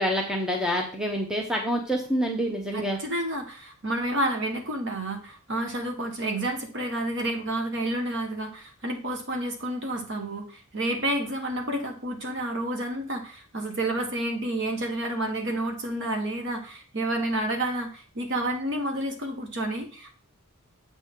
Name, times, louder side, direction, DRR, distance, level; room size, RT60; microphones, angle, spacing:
voice 1, 0.0-3.0, equal, 5° right, 1 dB, 0.8 m, -27 dB
voice 2, 2.7-20.1, right 1 dB, 55° right, 3 dB, 1.4 m, -30 dB
8.1 x 6.1 x 3.7 m, 0.38 s
head